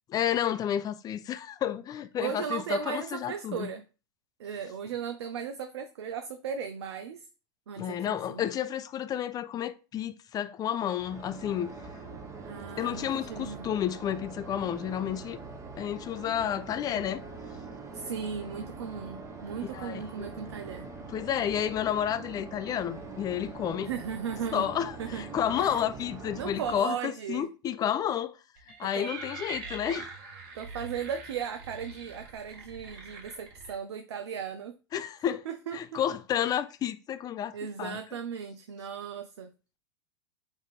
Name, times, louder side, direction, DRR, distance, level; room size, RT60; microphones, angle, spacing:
voice 1, 0.1-3.7 7.8-11.7 12.8-15.4 15.8-17.2 19.7-20.3 21.1-23.9 24.5-28.3 28.8-30.1 34.9-35.4 35.7-38.0, left 10 dB, 25° left, 0.4 m, -31 dB
voice 2, 2.2-3.8 4.4-7.2 7.7-8.4 12.4-13.7 17.9-20.8 23.9-24.7 25.0-25.3 25.6-25.8 26.3-27.5 28.9-29.1 30.5-34.8 35.5-36.0 37.5-39.5, right 7 dB, 80° right, 0.4 m, -36 dB
sound 1, 11.0-26.8, right 4 dB, 20° right, 0.8 m, -43 dB
sound 2, 28.6-33.7, right 4 dB, 55° right, 1.3 m, -43 dB
3.5 x 2.6 x 3.9 m
hypercardioid pair, 100°, 14 cm